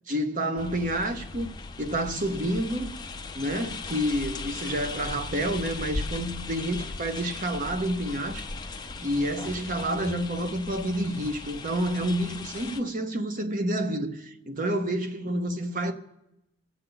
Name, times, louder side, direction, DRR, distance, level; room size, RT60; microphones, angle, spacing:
voice 1, 0.1-1.5 1.8-2.9 3.3-8.5 9.0-15.9, right 1 dB, 35° right, 0.8 m, -29 dB
sound 1, 0.6-12.8, left 3 dB, 20° left, 0.6 m, -38 dB
22.5 x 8.0 x 3.9 m
head